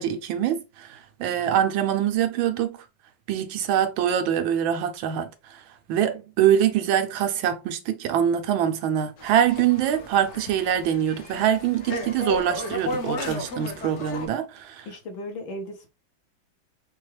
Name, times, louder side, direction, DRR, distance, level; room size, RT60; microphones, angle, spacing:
voice 1, 0.0-2.8 3.3-5.3 5.9-14.9, right 9 dB, 90° right, 1.5 m, -24 dB
sound 1, 9.2-14.3, left 1 dB, 55° left, 0.8 m, -34 dB
voice 2, 14.9-15.9, left 1 dB, 80° left, 1.8 m, -36 dB
4.5 x 2.3 x 3.1 m
omnidirectional pair, 2.1 m